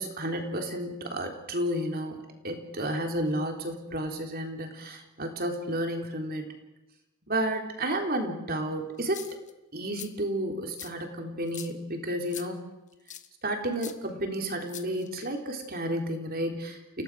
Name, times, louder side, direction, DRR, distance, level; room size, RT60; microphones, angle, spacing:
voice 1, 0.0-6.5 7.3-9.2 9.7-12.7 13.4-17.0, right 1 dB, 40° right, 3 dB, 3.7 m, -32 dB
sound 1, 9.0-9.5 9.9-10.1 10.8-10.9 11.5-11.7 12.3-12.5 13.1-13.3 13.8-13.9 14.7-15.3, left 10 dB, 35° left, 1.3 m, -42 dB
30.0 x 17.0 x 6.3 m, 0.96 s
head